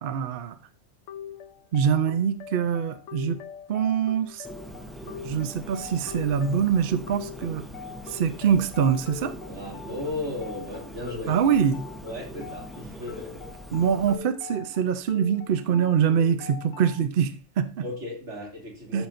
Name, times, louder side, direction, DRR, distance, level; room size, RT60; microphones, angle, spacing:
voice 1, 0.0-0.6 1.7-3.4 3.7-4.5 5.2-7.7 8.1-9.3 11.3-11.8 13.7-17.9 18.9-19.1, right 7 dB, 55° right, 11 dB, 0.7 m, -24 dB
sound 1, 1.1-17.1, left 9 dB, 85° left, 1.0 m, -43 dB
Bird, 4.4-14.2, right 1 dB, ahead, 0.7 m, -42 dB
voice 2, 9.3-11.4 12.0-13.4 17.8-19.1, left 2 dB, 75° right, -2 dB, 3.1 m, -35 dB
12.5 x 5.7 x 2.6 m, 0.35 s
omnidirectional pair, 1.3 m